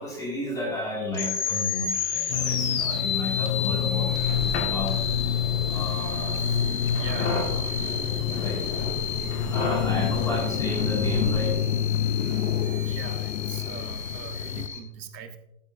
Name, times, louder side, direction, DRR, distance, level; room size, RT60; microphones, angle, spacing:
voice 1, 0.0-4.9 5.7-6.6 7.1-7.6 8.4-8.8 9.2-11.6, left 1 dB, 5° left, -4 dB, 2.3 m, -33 dB
sound 1, 1.1-14.8, left 6 dB, 80° left, 1.8 m, -32 dB
sound 2, 2.3-14.7, left 10 dB, 55° left, 0.7 m, -29 dB
sound 3, 4.1-11.5, left 2 dB, 25° left, 1.9 m, -32 dB
voice 2, 6.9-7.4 12.7-15.4, right 7 dB, 85° right, 7 dB, 1.5 m, -41 dB
13.0 x 7.9 x 2.7 m, 0.82 s
hypercardioid pair, 160°, 49 cm